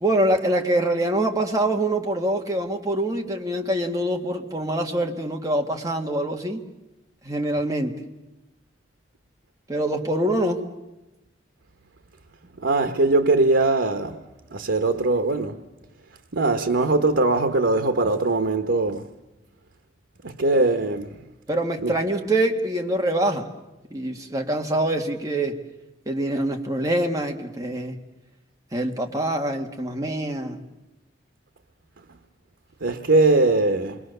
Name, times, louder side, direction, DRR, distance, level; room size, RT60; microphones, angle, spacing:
voice 1, 0.0-6.6 7.2-8.0 9.7-10.6 20.5-20.6 21.5-23.5 23.9-25.6 26.1-28.0 28.7-30.6, right 1 dB, 20° right, 1.8 m, -25 dB
voice 2, 12.6-14.2 14.5-15.6 16.3-19.1 20.2-21.1 21.8-21.9 32.8-34.0, right 2 dB, 90° right, 1.2 m, -21 dB
28.0 x 22.5 x 6.8 m
head